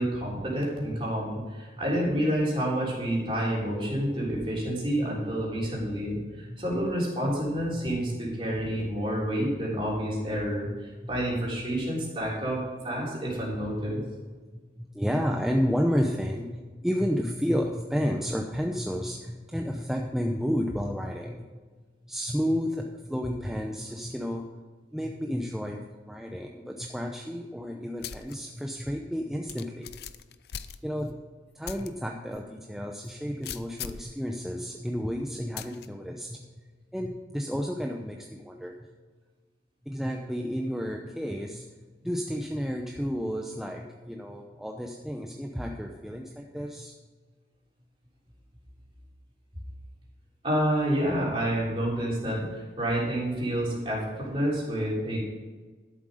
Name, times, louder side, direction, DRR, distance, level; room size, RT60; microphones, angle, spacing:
voice 1, 0.0-14.0 50.4-55.2, equal, 30° right, -4 dB, 3.5 m, -29 dB
voice 2, 6.5-6.8 7.8-7.9 11.0-11.1 13.8-13.9 14.5-21.6 22.0-24.6 24.9-29.9 30.8-31.2 31.5-36.6 36.9-38.9 39.9-46.9, equal, ahead, 1 dB, 0.6 m, -31 dB
sound 1, 28.0-28.4 28.8-28.9 29.5-31.2 31.6-31.9 32.3-32.4 33.4-34.1 35.6-35.9, left 8 dB, 65° left, 0.5 m, -39 dB
12.5 x 7.6 x 4.9 m, 1.4 s
head